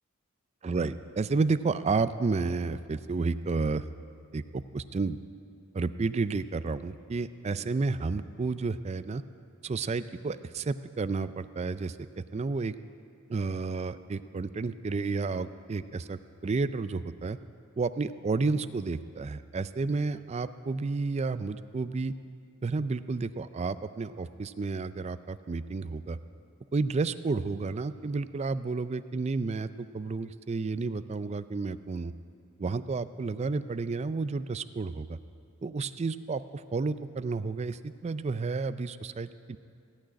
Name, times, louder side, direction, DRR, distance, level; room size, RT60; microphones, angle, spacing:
voice 1, 0.6-3.8 4.3-5.2 5.7-9.2 9.6-12.7 13.3-17.4 17.8-22.1 22.6-26.2 26.7-32.1 32.6-35.2 35.6-39.6, right 4 dB, 30° right, 13 dB, 0.4 m, -31 dB
16.5 x 6.3 x 9.7 m, 2.4 s
head